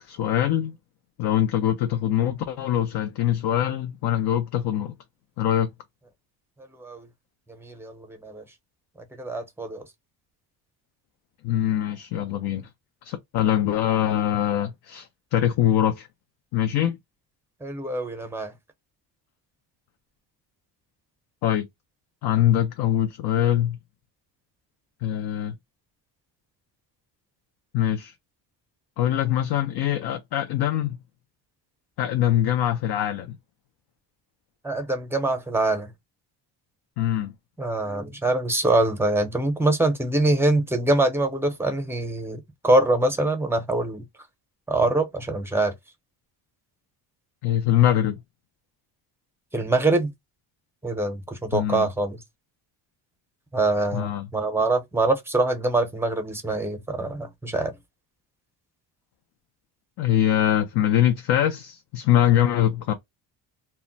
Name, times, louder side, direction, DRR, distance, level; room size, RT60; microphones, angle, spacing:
voice 1, 0.1-0.8 1.2-4.9 5.4-5.7 11.4-12.7 13.0-16.1 16.5-17.0 21.4-21.6 22.2-23.8 25.0-25.5 27.7-28.1 29.0-31.0 32.0-33.4 37.0-37.3 47.4-48.2 51.5-51.9 53.9-54.3 60.0-62.9, left 11 dB, 60° left, 0.5 m, -23 dB
voice 2, 7.6-8.4 9.2-9.8 17.6-18.5 34.6-35.9 37.6-44.0 44.7-45.7 49.5-50.1 50.8-52.2 53.5-57.7, right 2 dB, 5° right, 0.6 m, -24 dB
2.2 x 2.0 x 3.8 m
cardioid pair, 105°, 44 cm